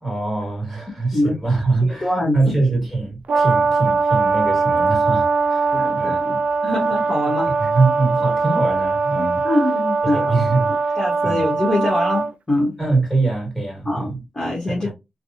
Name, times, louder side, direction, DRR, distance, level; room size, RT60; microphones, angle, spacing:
voice 1, 0.0-6.2 7.6-9.4 10.0-11.0 11.2-11.4 12.8-14.2 14.6-14.9, right 3 dB, ahead, 2.0 m, -23 dB
voice 2, 2.0-2.5 5.7-7.5 9.2-10.5 11.0-12.7 13.8-14.9, left 1 dB, 25° left, 1.2 m, -24 dB
Brass instrument, 3.3-12.3, right 4 dB, 80° right, 0.4 m, -21 dB
3.3 x 2.2 x 2.7 m
wide cardioid pair, 90°, 2 cm